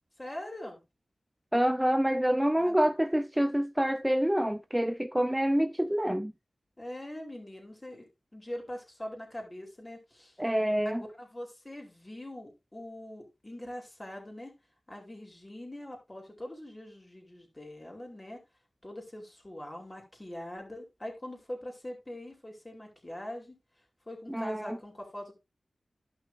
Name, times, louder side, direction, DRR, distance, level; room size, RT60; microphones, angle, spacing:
voice 1, 0.2-0.8 2.6-2.9 6.8-10.4 10.8-14.5 14.9-18.4 18.8-23.6 24.1-25.3, left 1 dB, 25° left, 2.9 m, -43 dB
voice 2, 1.5-6.3 10.4-11.0 24.3-24.8, equal, 10° right, 0.4 m, -27 dB
12.0 x 5.6 x 2.5 m
cardioid pair, 55°, 0 cm